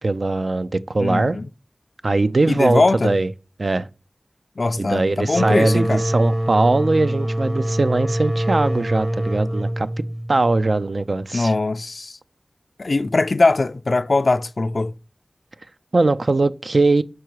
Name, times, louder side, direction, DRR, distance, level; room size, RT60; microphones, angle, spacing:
voice 1, 0.0-1.4 2.0-3.3 3.6-3.9 4.8-9.9 10.3-11.5 15.9-17.0, right 2 dB, 65° right, 0.4 m, -20 dB
voice 2, 1.0-1.5 2.5-3.2 4.6-6.0 11.3-12.2 12.8-14.9, left 3 dB, 70° left, 0.3 m, -21 dB
sound 1, 5.3-10.8, right 1 dB, 40° right, 1.1 m, -24 dB
6.2 x 4.7 x 4.6 m
wide cardioid pair, 55°, 0 cm